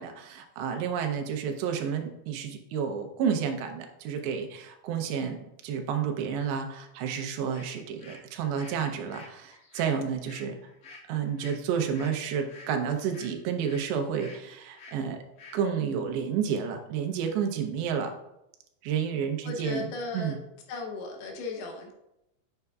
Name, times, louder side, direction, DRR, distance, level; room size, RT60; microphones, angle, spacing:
voice 1, 0.0-5.4 5.6-10.6 11.1-15.2 15.5-18.1 18.8-19.8 20.1-20.4, right 7 dB, 85° right, 4 dB, 3.0 m, -30 dB
sound 1, 7.1-7.2 7.5-13.9 14.2-14.4 14.8-15.0 15.4-15.6, left 3 dB, 45° left, 2.5 m, -50 dB
voice 2, 19.4-20.4 20.7-21.9, left 3 dB, 75° left, 2 dB, 2.7 m, -36 dB
8.0 x 6.6 x 2.3 m, 0.86 s
omnidirectional pair, 4.9 m